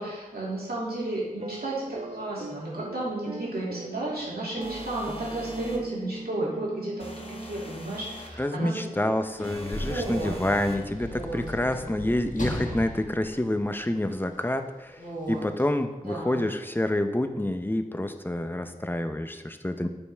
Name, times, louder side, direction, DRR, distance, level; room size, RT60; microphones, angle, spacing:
voice 1, 0.0-8.9 9.7-10.4 11.1-12.0 15.0-15.5 16.0-16.4, right 2 dB, 85° right, -6 dB, 2.5 m, -33 dB
sound 1, 1.4-7.9, right 2 dB, 45° right, 0.6 m, -40 dB
sound 2, 4.6-5.9 7.0-8.4 9.4-10.9, left 1 dB, 35° left, 1.2 m, -41 dB
voice 2, 8.4-19.9, left 1 dB, 15° left, 7 dB, 0.6 m, -28 dB
Sliding door / Slam, 9.0-14.3 15.2-15.4, left 1 dB, 55° left, 1.4 m, -37 dB
9.1 x 5.4 x 3.5 m, 1.1 s
wide cardioid pair, 45°, 15 cm